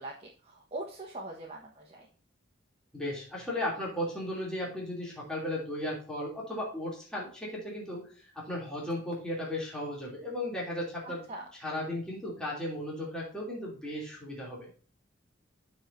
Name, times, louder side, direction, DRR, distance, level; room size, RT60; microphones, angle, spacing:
voice 1, 0.0-2.1 11.3-11.4, right 2 dB, 30° right, -2 dB, 1.2 m, -42 dB
voice 2, 2.9-11.2 11.6-14.7, left 1 dB, 5° left, -6 dB, 2.9 m, -35 dB
14.5 x 4.8 x 2.6 m, 0.42 s
head